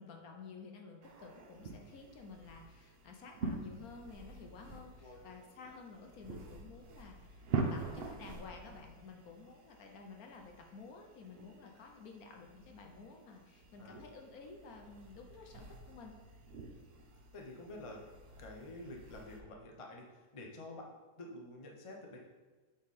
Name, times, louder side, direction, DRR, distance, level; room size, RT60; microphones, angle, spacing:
voice 1, 0.0-16.2, left 4 dB, 60° left, 2 dB, 1.1 m, -52 dB
sound 1, 1.0-19.4, right 4 dB, 75° right, 0.5 m, -45 dB
voice 2, 17.3-18.0 18.4-20.9 21.2-22.2, left 1 dB, 40° left, 0 dB, 0.4 m, -49 dB
7.6 x 3.8 x 4.1 m, 1.3 s
omnidirectional pair, 1.9 m